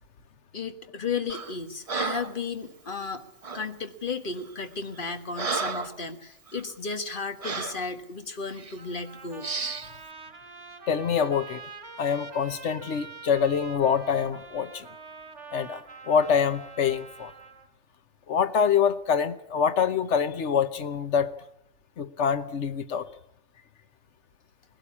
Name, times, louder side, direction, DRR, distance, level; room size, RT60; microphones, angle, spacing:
voice 1, 0.5-3.2 3.5-9.5, left 4 dB, 45° left, 7 dB, 1.6 m, -34 dB
Breathing, 1.3-1.6 1.9-2.4 3.4-3.7 4.4-4.5 5.0-6.0 6.5-6.6 7.4-7.8 8.5-8.8 9.4-9.9, right 4 dB, 35° right, 0.9 m, -33 dB
Trumpet, 8.8-17.7, right 4 dB, 80° right, 3.9 m, -45 dB
voice 2, 10.9-11.6 12.0-14.9 15.5-17.3 18.3-21.3 22.0-23.1, left 7 dB, 80° left, 11 dB, 1.3 m, -25 dB
21.0 x 17.0 x 8.5 m, 0.77 s
omnidirectional pair, 1.2 m